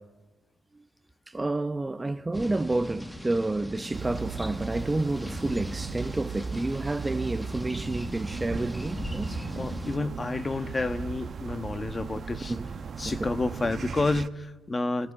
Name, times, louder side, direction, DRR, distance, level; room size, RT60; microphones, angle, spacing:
voice 1, 1.3-9.4 12.5-12.7 13.0-13.1, right 2 dB, 15° right, 0.8 m, -30 dB
sound 1, 2.3-10.0, equal, 5° left, 1.4 m, -39 dB
sound 2, 3.9-14.3, right 5 dB, 50° right, 1.1 m, -37 dB
voice 2, 9.5-12.6 13.0-15.1, left 3 dB, 25° left, 1.3 m, -30 dB
28.0 x 20.5 x 9.8 m
cardioid pair, 90°, 0 cm